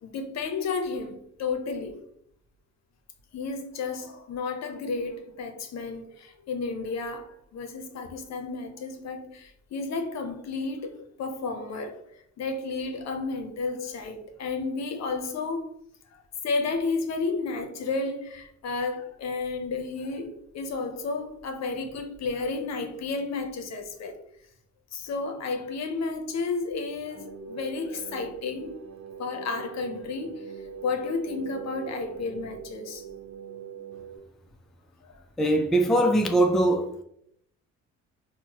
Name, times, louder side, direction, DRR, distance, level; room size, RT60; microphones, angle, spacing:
voice 1, 0.0-1.9 3.3-12.0 12.4-15.7 16.4-20.3 20.5-24.2 24.9-28.7 29.2-30.3 30.8-33.0, left 4 dB, 60° left, 0.7 m, -32 dB
sound 1, 27.1-34.2, right 7 dB, 65° right, 0.6 m, -42 dB
voice 2, 35.4-37.0, right 1 dB, ahead, 0.3 m, -22 dB
4.3 x 2.1 x 2.9 m
cardioid pair, 90°, 30 cm